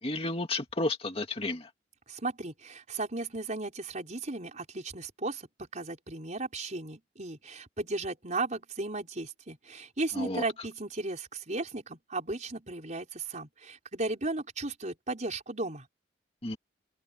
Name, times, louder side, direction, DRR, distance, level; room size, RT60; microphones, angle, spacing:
voice 1, 0.0-1.7 10.1-10.4 16.4-16.6, left 2 dB, 30° left, 2.1 m, -32 dB
voice 2, 2.1-5.5 5.7-15.9, right 2 dB, 40° right, 4.9 m, -35 dB
open air
head